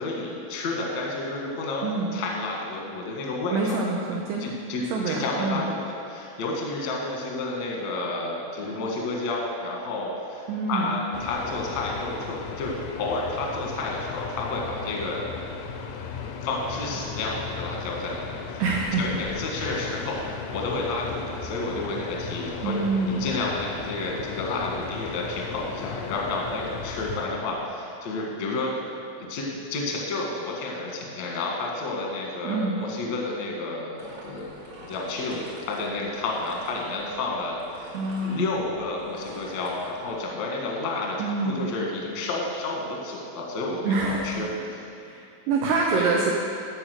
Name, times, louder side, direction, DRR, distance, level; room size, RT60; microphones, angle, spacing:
voice 1, 0.0-4.8 5.1-12.7 13.0-15.4 16.4-18.6 19.0-28.7 29.2-34.4 34.8-37.9 38.2-44.5 45.9-46.2, left 2 dB, 65° left, -2 dB, 1.7 m, -31 dB
voice 2, 1.8-2.1 3.5-4.5 4.9-5.6 10.5-11.0 18.6-19.0 22.6-23.2 32.4-32.8 37.9-38.5 41.2-41.6 43.8-44.5 45.0-46.3, right 4 dB, 80° right, -2 dB, 2.4 m, -26 dB
sound 1, 11.1-27.3, left 6 dB, 80° left, 2.9 m, -36 dB
sound 2, 34.0-40.1, right 1 dB, 60° right, 1.7 m, -46 dB
14.5 x 4.9 x 6.5 m, 2.4 s
omnidirectional pair, 5.8 m